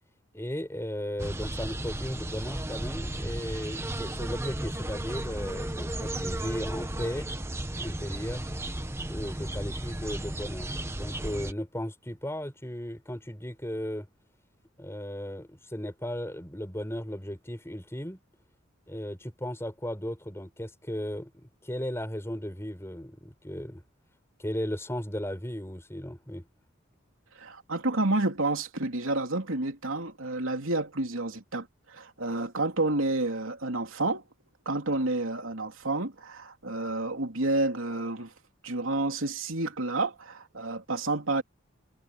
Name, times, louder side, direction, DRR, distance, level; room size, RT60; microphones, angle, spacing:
voice 1, 0.3-7.3 7.8-8.5 9.1-14.1 14.8-18.2 18.9-23.8 24.4-26.5, equal, 15° left, 5.2 m, -36 dB
sound 1, 1.2-11.5, right 1 dB, 15° right, 1.1 m, -34 dB
voice 2, 27.3-34.2 34.6-38.3 38.6-41.4, right 2 dB, 75° right, 3.1 m, -30 dB
head